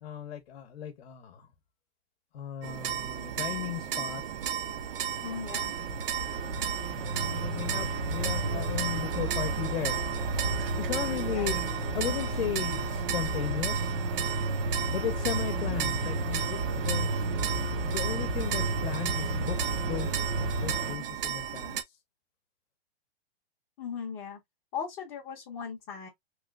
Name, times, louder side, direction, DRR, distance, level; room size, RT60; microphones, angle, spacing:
voice 1, 0.0-1.5 2.3-4.2 6.4-6.5 7.3-10.0 10.8-11.6 11.9-14.0 14.9-21.8, left 10 dB, 65° left, 0.8 m, -36 dB
sound 1, 2.6-21.8, right 9 dB, 60° right, 0.7 m, -35 dB
sound 2, 4.5-21.0, right 2 dB, 30° right, 0.5 m, -32 dB
voice 2, 5.2-5.7 11.2-11.7 23.8-24.4 24.7-26.1, left 7 dB, 20° left, 0.7 m, -38 dB
3.0 x 3.0 x 2.3 m
hypercardioid pair, 170°, 31 cm